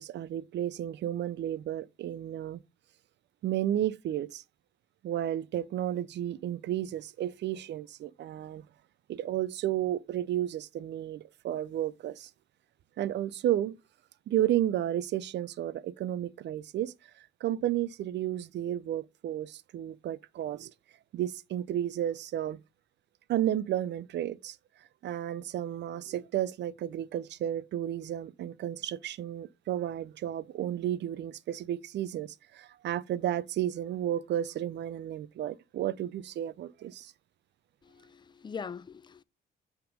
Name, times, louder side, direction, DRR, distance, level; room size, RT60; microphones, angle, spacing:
voice 1, 0.0-2.6 3.4-4.4 5.0-8.6 9.1-12.3 13.0-13.8 14.3-20.7 21.1-22.6 23.3-24.6 25.0-37.1, right 12 dB, 60° right, 0.4 m, -32 dB
voice 2, 37.8-39.2, left 6 dB, 25° left, 0.4 m, -42 dB
5.8 x 3.6 x 5.1 m
cardioid pair, 90°, 20 cm